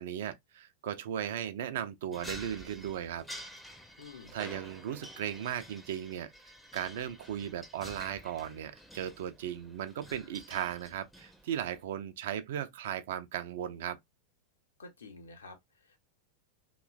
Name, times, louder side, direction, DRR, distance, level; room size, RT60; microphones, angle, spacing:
voice 1, 0.0-3.2 4.3-6.3 6.7-14.0, right 10 dB, 55° right, 0.4 m, -37 dB
sound 1, 2.1-11.8, equal, ahead, 0.5 m, -49 dB
voice 2, 4.0-4.4 14.8-16.0, left 3 dB, 70° left, 0.8 m, -50 dB
3.0 x 2.3 x 2.3 m
figure-of-eight pair, 90°, 0 cm